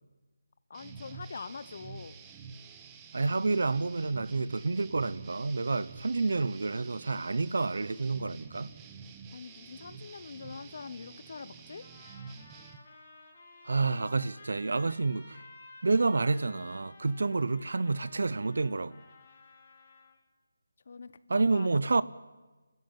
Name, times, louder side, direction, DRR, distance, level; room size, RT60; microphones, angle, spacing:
voice 1, 0.7-2.1 9.3-11.8 20.9-22.0, left 5 dB, 45° left, 1.0 m, -44 dB
sound 1, 0.7-12.8, right 5 dB, 15° right, 1.0 m, -49 dB
voice 2, 3.1-8.7 13.6-15.4 15.8-19.0 21.3-22.0, right 3 dB, 65° right, 0.8 m, -29 dB
sound 2, 11.8-20.2, left 3 dB, 30° left, 4.2 m, -54 dB
25.5 x 13.5 x 9.0 m
figure-of-eight pair, 165°, 0 cm